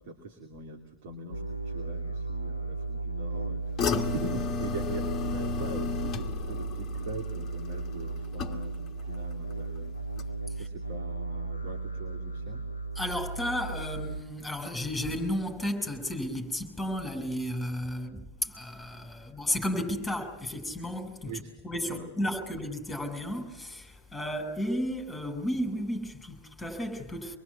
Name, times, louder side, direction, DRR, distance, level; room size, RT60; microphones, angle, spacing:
voice 1, 0.0-9.9 10.6-12.7 21.3-21.6 21.8-22.1, right 3 dB, 55° right, 2.5 m, -42 dB
sound 1, 1.3-14.2, right 3 dB, 90° left, 1.1 m, -35 dB
sound 2, 3.8-9.0 9.3-9.8 10.2-10.3, left 6 dB, 25° left, 1.9 m, -34 dB
voice 2, 13.0-27.4, left 1 dB, 5° left, 5.7 m, -33 dB
25.5 x 22.5 x 8.5 m
figure-of-eight pair, 90°, 0 cm